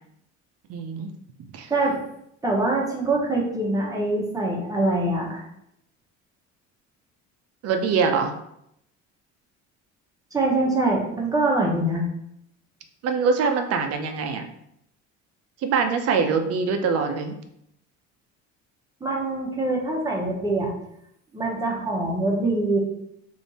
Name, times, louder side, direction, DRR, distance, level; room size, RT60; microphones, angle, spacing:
voice 1, 0.7-1.1 1.5-1.7 7.6-8.3 13.0-14.5 15.6-17.4, right 5 dB, 55° right, 6 dB, 0.6 m, -23 dB
voice 2, 2.4-5.4 10.3-12.0 19.0-20.7 21.3-22.8, right 2 dB, 10° right, -2 dB, 1.0 m, -24 dB
3.4 x 2.7 x 4.1 m, 0.76 s
cardioid pair, 125°, 30 cm